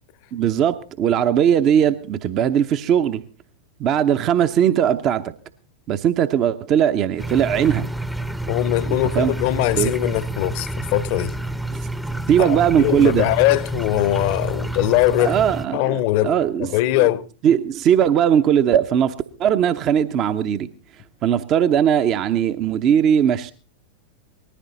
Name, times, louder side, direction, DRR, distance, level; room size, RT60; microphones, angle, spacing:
voice 1, 0.3-3.2 3.8-5.3 5.9-7.9 8.9-9.3 9.8-9.9 12.3-13.3 15.2-16.7 17.0-17.1 17.4-19.1 19.4-20.7 21.2-23.5, right 9 dB, 35° right, 0.8 m, -19 dB
sound 1, 7.2-15.7, right 2 dB, ahead, 0.8 m, -29 dB
voice 2, 8.5-11.3 12.4-15.4 15.7-16.3 16.6-17.3, left 15 dB, 45° left, 0.8 m, -21 dB
19.5 x 14.5 x 4.1 m
figure-of-eight pair, 90°, 0 cm